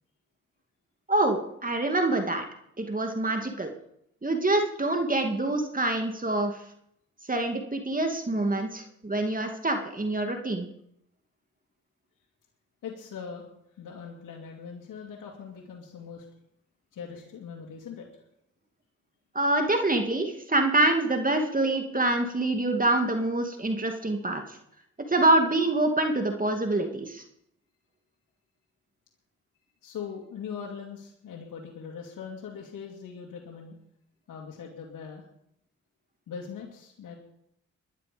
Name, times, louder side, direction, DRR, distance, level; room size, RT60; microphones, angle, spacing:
voice 1, 1.1-2.4 2.8-3.7 4.2-6.6 7.3-10.7 19.3-24.6 25.1-27.2, right 2 dB, 25° right, 4 dB, 2.4 m, -26 dB
voice 2, 12.8-13.5 13.8-16.3 16.9-18.1 29.8-33.8 34.3-35.3 36.3-37.1, left 6 dB, 85° left, -1 dB, 2.3 m, -41 dB
21.0 x 11.5 x 5.2 m, 0.74 s
cardioid pair, 55°, 31 cm